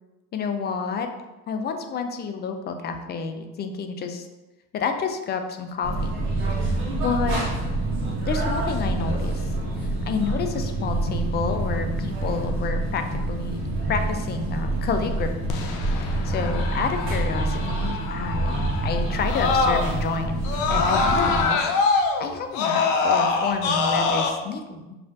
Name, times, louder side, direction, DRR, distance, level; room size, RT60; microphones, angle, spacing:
voice 1, 0.3-1.1 1.5-4.3 4.7-6.1 6.6-7.4 8.3-9.4 10.1-13.0 13.3-15.3 16.0-21.7 22.2-25.0, left 5 dB, 35° left, 6 dB, 0.4 m, -29 dB
sound 1, 5.8-21.4, right 2 dB, 40° right, 1.2 m, -27 dB
Screaming, 15.5-20.1 20.4-24.3, left 4 dB, 80° left, 0.6 m, -24 dB
5.4 x 2.5 x 2.5 m, 1.1 s
cardioid pair, 115°, 30 cm